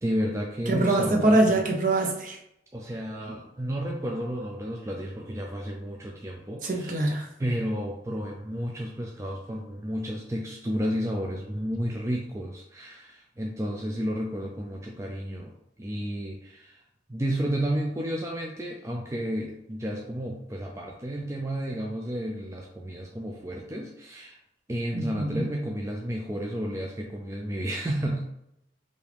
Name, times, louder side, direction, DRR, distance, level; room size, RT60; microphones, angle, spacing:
voice 1, 0.0-1.6 2.7-7.0 7.4-15.5 15.8-16.8 17.1-24.4 24.7-28.3, equal, 15° right, -1 dB, 0.4 m, -32 dB
voice 2, 0.7-2.4 6.6-7.3 24.9-25.5, right 2 dB, 45° right, 2 dB, 0.8 m, -24 dB
4.9 x 2.7 x 3.3 m, 0.78 s
head